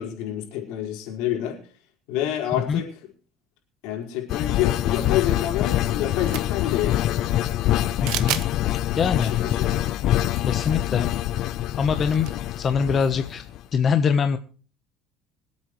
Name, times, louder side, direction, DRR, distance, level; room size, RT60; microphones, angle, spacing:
voice 1, 0.0-1.6 2.1-2.9 3.8-7.3 9.0-9.8, left 11 dB, 80° left, 1 dB, 4.9 m, -28 dB
sound 1, 4.3-13.6, left 13 dB, 60° left, 0.6 m, -25 dB
sound 2, 6.2-6.7 8.1-8.5 9.0-9.1 10.3-10.4 10.7-10.8 12.0-12.4, right 14 dB, 70° right, 1.2 m, -30 dB
voice 2, 8.0-8.4 9.0-9.3 10.4-11.1 11.8-12.3 12.6-13.4 13.7-14.4, left 6 dB, 35° left, 8 dB, 1.1 m, -23 dB
26.0 x 8.8 x 3.2 m, 0.39 s
cardioid pair, 130°, 0 cm